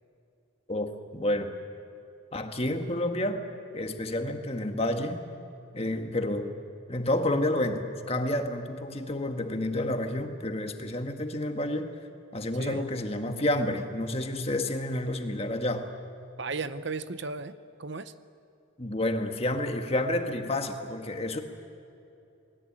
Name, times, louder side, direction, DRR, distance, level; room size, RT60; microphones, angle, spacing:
voice 1, 0.7-1.5 2.3-3.4 3.7-5.2 5.7-6.5 6.9-11.9 12.3-15.9 18.8-21.4, left 1 dB, 30° left, 5 dB, 1.7 m, -29 dB
voice 2, 16.4-18.1, right 4 dB, 55° right, 13 dB, 0.8 m, -35 dB
29.0 x 20.0 x 8.8 m, 2.8 s
head